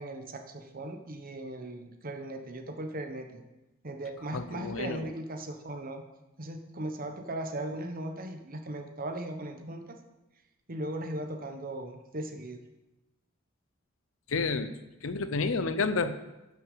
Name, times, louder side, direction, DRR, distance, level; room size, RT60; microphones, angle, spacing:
voice 1, 0.0-3.4 3.8-6.0 6.4-10.0 10.7-12.6, right 1 dB, 45° right, 5 dB, 1.2 m, -38 dB
voice 2, 4.3-5.1 14.3-14.7 15.0-16.2, left 4 dB, 75° left, 11 dB, 0.7 m, -30 dB
11.5 x 6.1 x 5.6 m, 1.0 s
head